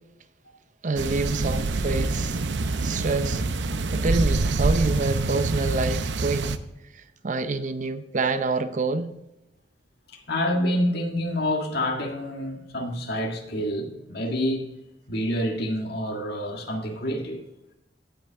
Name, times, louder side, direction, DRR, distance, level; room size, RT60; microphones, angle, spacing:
voice 1, 0.8-2.4 2.8-6.6 6.9-9.1, right 3 dB, 45° right, 0.6 m, -27 dB
sound 1, 1.0-6.6, right 3 dB, 80° right, 0.6 m, -26 dB
voice 2, 10.3-14.7 15.1-17.4, left 1 dB, 65° left, 1.9 m, -27 dB
17.5 x 5.8 x 3.6 m
head